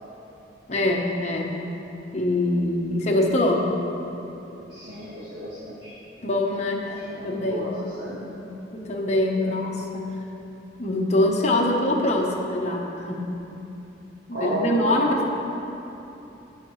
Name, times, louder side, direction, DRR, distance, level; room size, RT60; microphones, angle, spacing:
voice 1, 0.7-1.5 2.1-3.7 6.2-7.8 8.1-10.1 10.8-13.3 14.3-15.3, left 1 dB, 40° left, -1 dB, 1.0 m, -24 dB
voice 2, 4.6-5.9 6.8-8.1 14.3-14.9, equal, 65° right, -10 dB, 1.8 m, -32 dB
16.0 x 5.8 x 3.1 m, 3.0 s
head